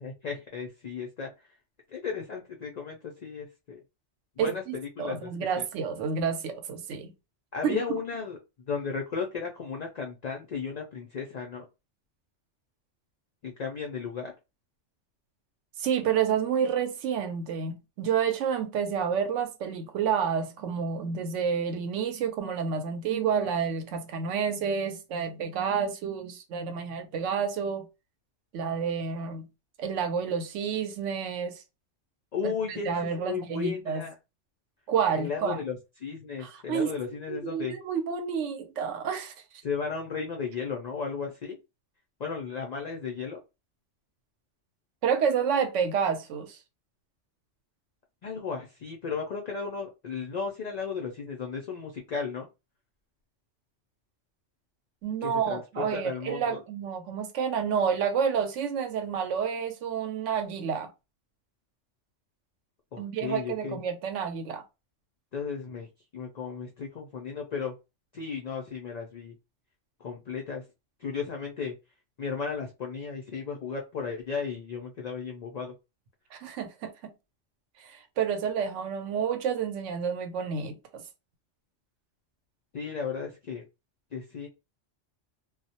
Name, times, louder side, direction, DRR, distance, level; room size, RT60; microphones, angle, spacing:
voice 1, 0.2-1.3 1.9-3.8 4.4-5.3 5.6-5.7 7.5-8.4 8.7-11.6 13.4-14.3 32.3-32.9 33.2-34.1 35.1-35.7 36.0-37.7 39.6-41.6 42.2-43.4 48.2-52.5 55.2-56.6 62.9-63.8 65.3-65.9 66.1-67.7 68.1-69.3 70.0-70.6 71.0-71.7 72.2-75.7 82.7-83.6 84.1-84.5, left 5 dB, 70° left, 0.4 m, -34 dB
voice 2, 4.4-7.1 7.6-8.0 15.8-27.9 28.5-29.5 29.8-31.6 32.4-34.1 34.9-35.6 36.4-36.9 37.3-39.3 45.0-46.6 55.0-60.9 63.0-64.6 76.3-76.9 77.8-81.0, right 7 dB, 80° right, 0.9 m, -29 dB
2.3 x 2.0 x 2.7 m
omnidirectional pair, 1.3 m